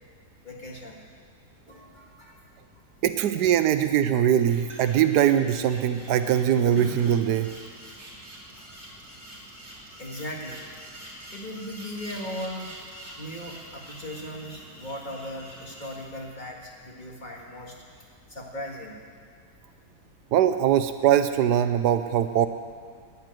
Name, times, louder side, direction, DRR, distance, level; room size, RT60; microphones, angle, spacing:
voice 1, 0.4-1.0 1.7-2.4 2.7-2.8 8.6-8.7 9.7-10.6 11.3-12.7 13.0-17.8 18.3-19.0, equal, 30° left, -1 dB, 1.8 m, -38 dB
voice 2, 3.0-7.5 20.3-22.5, right 10 dB, 80° right, 10 dB, 1.2 m, -22 dB
sound 1, 4.3-16.0, equal, 40° right, 4.0 m, -45 dB
11.0 x 9.3 x 9.2 m, 2.2 s
omnidirectional pair, 1.8 m